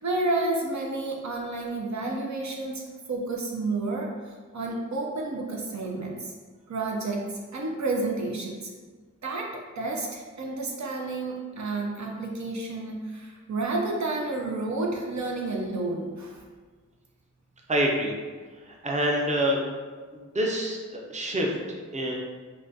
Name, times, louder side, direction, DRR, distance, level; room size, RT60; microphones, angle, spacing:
voice 1, 0.0-6.3 6.7-8.7 9.2-16.4, right 2 dB, 70° right, -1 dB, 0.5 m, -30 dB
voice 2, 17.7-18.1 18.6-19.6 20.1-22.2, equal, 25° right, -1 dB, 0.5 m, -27 dB
3.8 x 2.3 x 2.6 m, 1.5 s
cardioid pair, 40°, 30 cm